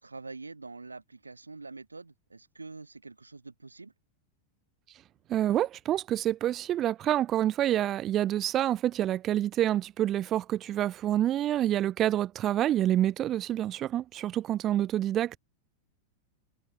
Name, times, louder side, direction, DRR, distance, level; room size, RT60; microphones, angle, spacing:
voice 1, 0.0-3.9, right 3 dB, 80° right, 4.0 m, -45 dB
voice 2, 5.3-15.4, right 12 dB, 30° right, 0.4 m, -27 dB
figure-of-eight pair, 90°, 0 cm